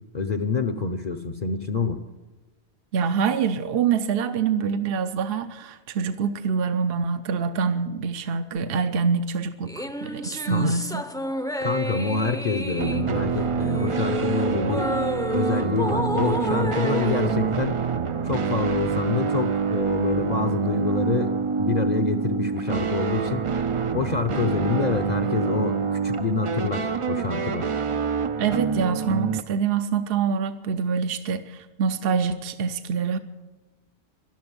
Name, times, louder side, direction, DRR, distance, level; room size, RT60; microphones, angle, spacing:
voice 1, 0.1-2.0 10.5-10.7 11.6-14.9 15.3-17.8 18.2-23.4 23.9-27.7, left 4 dB, 45° left, 7 dB, 0.8 m, -26 dB
voice 2, 2.9-11.0 28.4-33.2, right 6 dB, 65° right, 10 dB, 0.9 m, -25 dB
sound 1, 9.7-18.3, equal, 5° left, 0.5 m, -31 dB
sound 2, 12.8-29.4, right 6 dB, 40° right, 0.5 m, -26 dB
12.0 x 12.0 x 9.6 m, 1.2 s
omnidirectional pair, 1.1 m